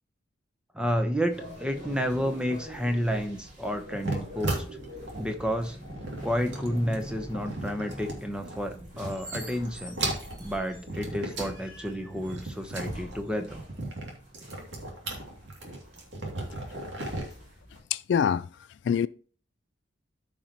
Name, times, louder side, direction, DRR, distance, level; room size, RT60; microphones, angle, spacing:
voice 1, 0.7-4.6 5.2-5.8 6.2-10.0 10.4-13.6, equal, 5° right, 0.9 m, -30 dB
sound 1, 1.3-17.8, equal, 40° right, 4.8 m, -46 dB
sound 2, 3.9-8.6 8.9-9.7 10.0-11.6 11.9-17.2, right 2 dB, 65° right, 2.6 m, -35 dB
sound 3, 5.1-9.7, left 1 dB, 25° left, 0.7 m, -44 dB
voice 2, 17.9-18.5 18.8-19.1, left 7 dB, 65° left, 0.3 m, -24 dB
14.5 x 5.3 x 3.0 m
head